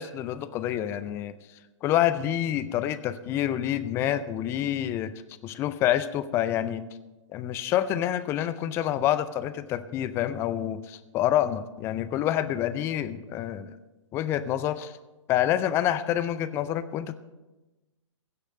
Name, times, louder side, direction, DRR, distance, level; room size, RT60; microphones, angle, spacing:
voice 1, 0.0-1.4 1.8-5.1 5.4-6.8 7.3-13.7 14.1-15.0 15.3-17.1, left 11 dB, 15° left, 14 dB, 0.4 m, -27 dB
16.0 x 6.5 x 6.4 m, 1.1 s
figure-of-eight pair, 120°, 16 cm